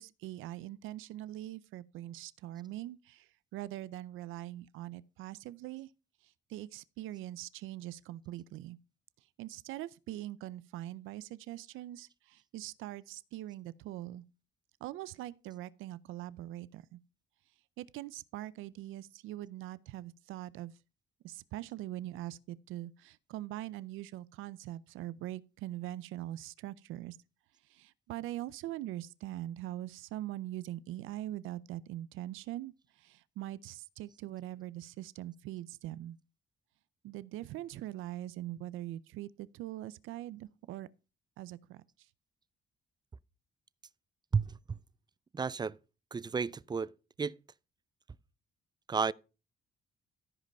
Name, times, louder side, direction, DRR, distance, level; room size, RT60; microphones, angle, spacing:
voice 1, 0.0-5.9 6.2-8.8 9.4-14.2 14.8-17.0 17.8-20.8 21.2-27.2 27.6-36.2 37.0-40.9 41.4-42.1, right 14 dB, 90° right, 0.5 m, -42 dB
voice 2, 44.3-44.8 45.3-45.8 46.1-46.9 47.2-47.3 48.9-49.1, right 5 dB, 20° right, 0.5 m, -32 dB
14.0 x 5.2 x 5.3 m
cardioid pair, 90°, 20 cm